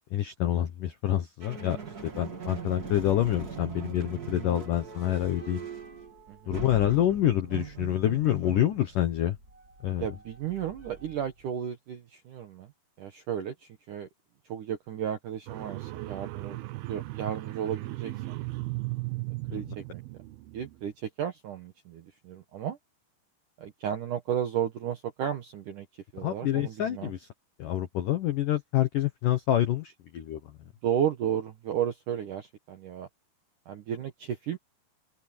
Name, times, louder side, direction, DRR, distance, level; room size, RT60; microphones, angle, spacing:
voice 1, 0.1-1.8 2.0-5.7 6.5-9.4 9.8-10.1 19.5-19.6 26.2-27.3 27.6-30.4, left 12 dB, 75° left, 1.9 m, -27 dB
sound 1, 1.4-11.5, right 6 dB, 30° right, 1.7 m, -42 dB
voice 2, 6.3-6.7 10.0-12.7 13.0-14.1 14.5-16.6 16.9-18.4 19.5-20.0 20.5-22.8 23.6-25.9 26.1-27.1 30.8-33.1 33.7-34.6, right 9 dB, 70° right, 1.9 m, -33 dB
sound 2, 15.5-20.8, right 20 dB, 85° right, 2.2 m, -36 dB
open air
omnidirectional pair, 5.5 m